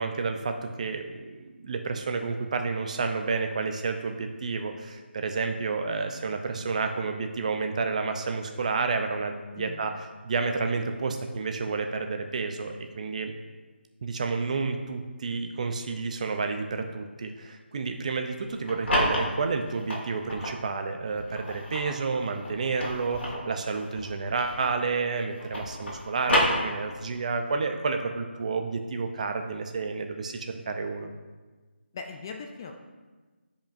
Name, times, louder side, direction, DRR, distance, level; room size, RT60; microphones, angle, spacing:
voice 1, 0.0-9.9 10.2-13.3 14.0-31.1, right 4 dB, 35° right, 6 dB, 0.5 m, -30 dB
voice 2, 9.6-9.9 31.9-32.7, left 5 dB, 20° left, 4 dB, 0.3 m, -39 dB
sound 1, 18.4-20.6 21.1-24.9 25.2-27.2, equal, 65° left, 2.1 m, -30 dB
9.1 x 5.1 x 2.6 m, 1.3 s
figure-of-eight pair, 165°, 6 cm